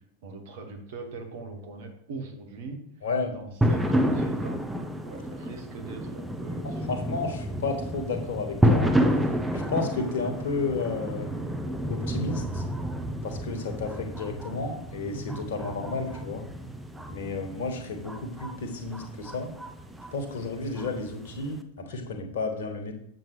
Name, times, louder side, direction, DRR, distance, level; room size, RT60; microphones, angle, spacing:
voice 1, 0.2-2.8 3.3-4.7 5.0-7.0, right 3 dB, 55° right, 4 dB, 1.5 m, -41 dB
voice 2, 3.0-3.4 6.6-8.9 9.5-11.5 11.9-12.6 13.2-16.4 17.1-19.5 20.1-22.9, left 3 dB, 60° left, 5 dB, 1.4 m, -32 dB
sound 1, 3.6-21.6, equal, 5° right, 0.6 m, -30 dB
7.4 x 7.3 x 3.2 m, 0.69 s
figure-of-eight pair, 90°, 0 cm